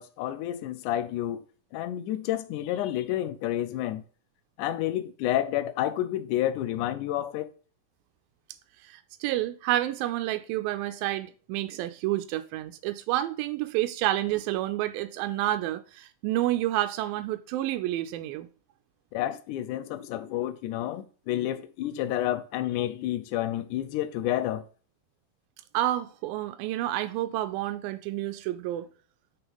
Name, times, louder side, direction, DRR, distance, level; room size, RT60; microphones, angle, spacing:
voice 1, 0.0-1.4 1.7-4.0 4.6-7.5 19.1-24.6, left 12 dB, 75° left, 1.9 m, -30 dB
voice 2, 8.8-18.5 25.7-28.9, right 14 dB, 90° right, 2.4 m, -29 dB
6.4 x 6.0 x 5.3 m
omnidirectional pair, 4.0 m